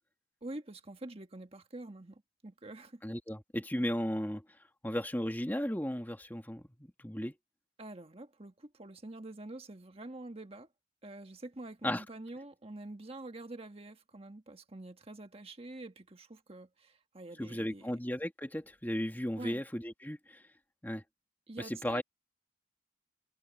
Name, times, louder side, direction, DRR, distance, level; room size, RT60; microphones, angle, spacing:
voice 1, 0.4-3.0 7.8-10.7 11.0-17.9 19.4-19.6 21.5-22.0, right 2 dB, 30° right, 1.5 m, -46 dB
voice 2, 3.0-4.4 4.8-6.6 7.0-7.3 11.8-12.0 17.4-20.4 20.8-21.0 21.8-22.0, equal, 10° left, 1.7 m, -35 dB
head